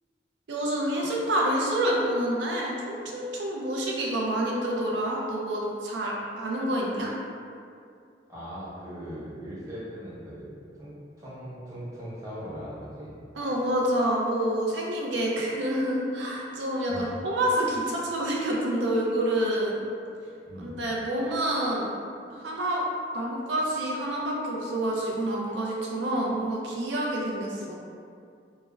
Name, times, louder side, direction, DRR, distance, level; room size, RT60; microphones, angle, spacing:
voice 1, 0.5-7.1 13.4-19.8 20.6-21.9 22.3-22.8 23.1-27.7, right 1 dB, 85° right, -3 dB, 0.4 m, -28 dB
voice 2, 8.3-13.1 16.9-17.2 20.5-20.8, equal, 20° right, -10 dB, 0.8 m, -40 dB
4.2 x 2.1 x 2.2 m, 2.4 s
head